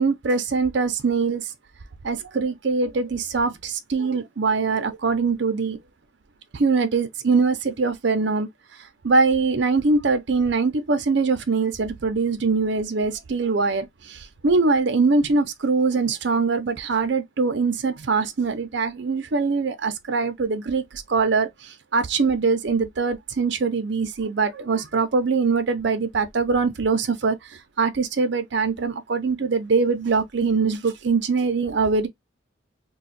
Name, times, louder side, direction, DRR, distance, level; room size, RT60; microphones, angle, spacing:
voice 1, 0.0-1.5 2.0-5.8 6.5-32.1, right 4 dB, 60° right, 0.5 m, -23 dB
2.4 x 2.3 x 4.0 m
head